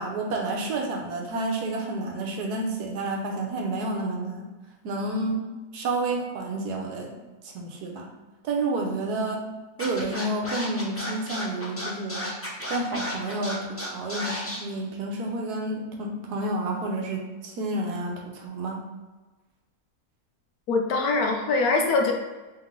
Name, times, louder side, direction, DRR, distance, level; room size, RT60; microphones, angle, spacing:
voice 1, 0.0-4.5 4.8-5.4 5.7-7.1 7.4-8.1 8.4-9.5 9.8-12.3 12.7-18.8, right 2 dB, 75° right, 1 dB, 1.3 m, -30 dB
Scratching (performance technique), 9.8-14.6, left 1 dB, 20° left, 0.3 m, -33 dB
voice 2, 20.7-22.1, left 3 dB, 70° left, 2 dB, 1.0 m, -23 dB
3.4 x 3.3 x 3.6 m, 1.2 s
omnidirectional pair, 1.8 m